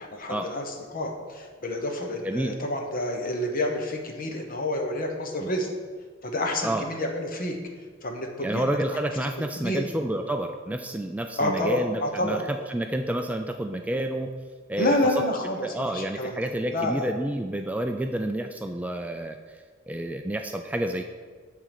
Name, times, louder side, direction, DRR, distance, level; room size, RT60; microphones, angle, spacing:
voice 1, 0.0-5.7 6.2-7.6 8.0-8.8 9.6-9.9 11.4-12.5 14.8-16.4 16.7-17.0, left 1 dB, 45° left, 3 dB, 1.1 m, -29 dB
voice 2, 8.4-14.3 14.7-15.0 15.6-21.1, right 1 dB, 5° right, 5 dB, 0.3 m, -29 dB
9.2 x 3.8 x 6.7 m, 1.5 s
head